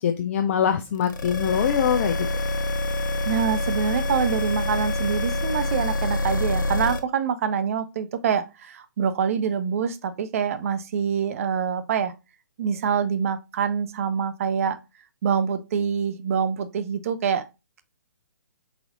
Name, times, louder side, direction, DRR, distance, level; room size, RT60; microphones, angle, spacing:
voice 1, 0.0-2.3, left 8 dB, 40° left, 0.4 m, -23 dB
sound 1, 1.0-7.0, left 2 dB, 65° left, 0.8 m, -26 dB
voice 2, 3.2-12.1 12.6-14.8 15.2-17.5, right 7 dB, 45° right, 0.5 m, -25 dB
4.1 x 4.1 x 2.6 m
figure-of-eight pair, 135°, 11 cm